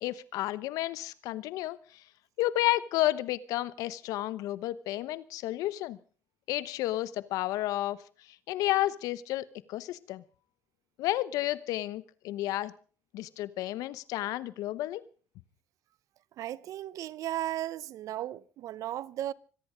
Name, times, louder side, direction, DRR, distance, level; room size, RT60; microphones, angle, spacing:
voice 1, 0.0-2.0 2.4-6.0 6.5-8.0 8.5-10.2 11.0-12.7 13.1-15.0, left 15 dB, 80° left, 0.9 m, -31 dB
voice 2, 16.4-19.3, right 13 dB, 70° right, 0.8 m, -35 dB
25.0 x 10.5 x 5.1 m
supercardioid pair, 75°, 6 cm